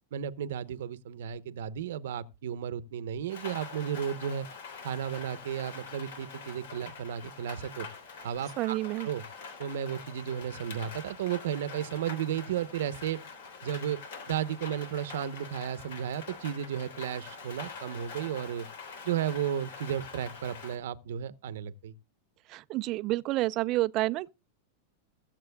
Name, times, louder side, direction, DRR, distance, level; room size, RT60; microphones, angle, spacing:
voice 1, 0.1-4.5 4.8-7.9 8.2-9.2 9.6-13.2 13.6-14.0 14.3-18.7 19.0-21.9, right 9 dB, 75° right, 0.8 m, -34 dB
Rain, 3.3-20.8, left 5 dB, 75° left, 3.5 m, -45 dB
voice 2, 8.6-9.1 22.5-24.3, right 18 dB, 35° right, 0.4 m, -29 dB
21.5 x 7.5 x 2.2 m
supercardioid pair, 160°, 0 cm